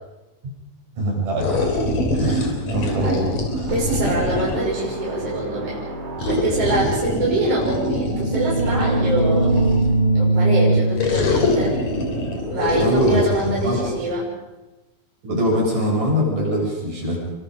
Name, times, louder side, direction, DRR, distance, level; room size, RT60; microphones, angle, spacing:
voice 1, 1.0-1.5 2.1-3.7 12.8-13.9 15.2-17.2, equal, 55° right, -3 dB, 9.1 m, -23 dB
sound 1, 1.4-4.8 6.2-10.0 11.0-13.9, left 2 dB, 45° left, 4.5 m, -24 dB
voice 2, 3.0-3.3 3.7-5.8 6.3-9.5 10.1-11.7 12.5-14.3, right 1 dB, 35° right, -5 dB, 7.6 m, -24 dB
sound 2, 3.7-6.9, right 2 dB, 75° right, 7.4 m, -33 dB
sound 3, 7.9-13.4, right 2 dB, 70° left, 4.7 m, -22 dB
28.0 x 24.5 x 5.3 m, 1.0 s
omnidirectional pair, 4.6 m